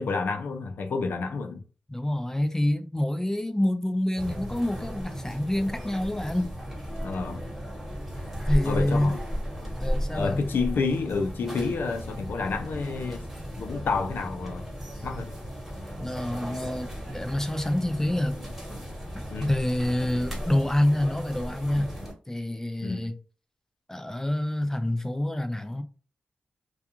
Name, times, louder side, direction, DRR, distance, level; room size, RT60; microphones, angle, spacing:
voice 1, 0.0-1.6 7.0-7.5 8.6-9.2 10.1-13.2 13.6-14.7 15.0-15.4 19.3-19.5 22.8-23.1, left 4 dB, 80° left, 0.5 m, -29 dB
voice 2, 1.9-6.5 8.5-9.1 9.8-10.4 16.0-18.4 19.1-22.0 22.3-23.2 23.9-25.8, left 1 dB, 15° left, 0.3 m, -27 dB
sound 1, 4.2-22.1, equal, 5° right, 1.3 m, -35 dB
2.4 x 2.3 x 2.8 m
cardioid pair, 75°, 4 cm